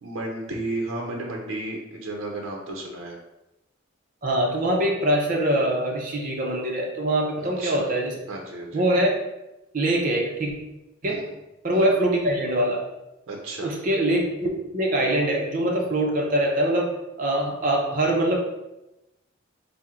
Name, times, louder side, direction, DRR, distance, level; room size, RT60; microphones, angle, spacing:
voice 1, 0.0-3.2 7.4-7.9 8.3-8.9 11.0-11.4 11.7-11.9 13.3-13.7, right 2 dB, 90° right, 0 dB, 0.6 m, -33 dB
voice 2, 4.2-8.1 8.7-9.1 9.7-10.5 11.0-11.2 11.6-12.8 13.6-16.9 17.2-18.4, right 1 dB, 40° right, -1 dB, 0.5 m, -23 dB
4.2 x 2.1 x 3.6 m, 0.94 s
head